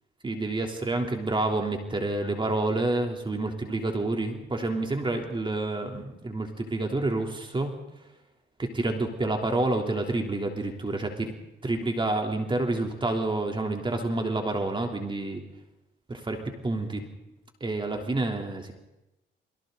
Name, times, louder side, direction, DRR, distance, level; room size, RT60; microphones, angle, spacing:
voice 1, 0.2-7.7 8.6-11.3 11.6-15.4 16.1-17.1 17.6-18.7, right 2 dB, 25° right, 3 dB, 3.4 m, -28 dB
30.0 x 23.5 x 4.0 m, 0.95 s
cardioid pair, 90°, 20 cm